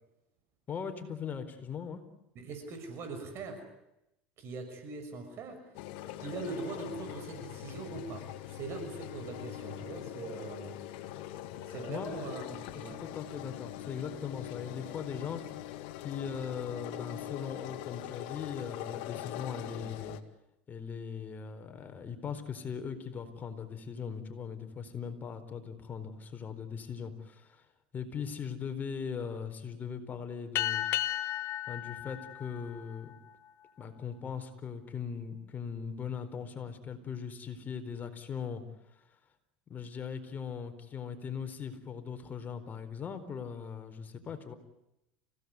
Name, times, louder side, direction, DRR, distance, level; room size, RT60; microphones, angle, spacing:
voice 1, 0.7-2.0 11.9-12.2 12.7-20.2 20.7-27.6 27.9-30.8 31.7-33.1 33.8-38.6 39.7-44.5, left 6 dB, 35° left, 7 dB, 4.3 m, -39 dB
voice 2, 2.3-3.6 4.4-5.6 6.2-10.8 11.6-13.0, right 3 dB, 50° right, 7 dB, 6.2 m, -41 dB
sound 1, 5.7-20.2, left 13 dB, 70° left, 2.1 m, -42 dB
sound 2, 30.5-33.5, left 13 dB, 55° left, 1.9 m, -34 dB
29.0 x 17.5 x 9.7 m, 0.88 s
hypercardioid pair, 85°, 5 cm